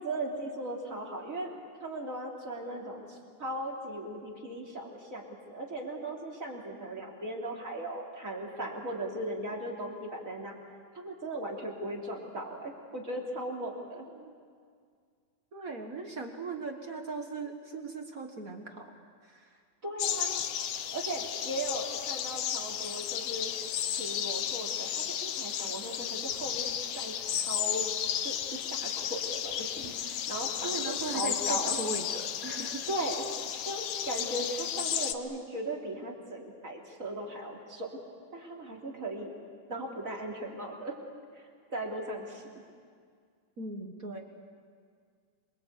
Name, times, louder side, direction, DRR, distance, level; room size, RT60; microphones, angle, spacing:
voice 1, 0.0-1.5 1.8-10.5 10.9-14.1 19.8-20.4 20.9-23.5 24.0-26.7 26.9-27.8 28.2-31.8 32.9-33.2 33.6-38.0 38.3-39.3 39.7-40.9 41.3-42.5, right 1 dB, 20° right, -2 dB, 3.4 m, -38 dB
voice 2, 15.5-18.9 19.2-19.6 30.6-32.9 43.6-44.2, right 3 dB, 55° right, 3 dB, 0.9 m, -39 dB
sound 1, 20.0-35.1, left 9 dB, 85° left, 1.3 m, -33 dB
27.0 x 23.5 x 8.4 m, 2.1 s
omnidirectional pair, 4.2 m